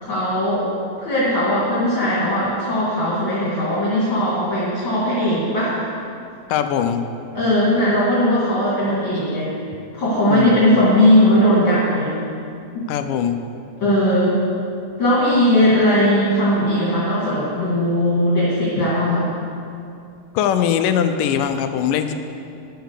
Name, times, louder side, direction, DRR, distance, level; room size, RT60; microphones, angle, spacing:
voice 1, 0.0-0.7 1.0-5.9 7.3-9.5 9.9-12.2 12.7-12.8 13.8-14.4 15.0-19.3, left 1 dB, 40° left, -8 dB, 2.7 m, -18 dB
voice 2, 6.5-7.0 9.3-9.4 10.3-10.9 12.9-13.4 20.3-22.1, left 8 dB, 85° left, 8 dB, 2.3 m, -21 dB
10.0 x 8.1 x 6.6 m, 2.5 s
omnidirectional pair, 3.7 m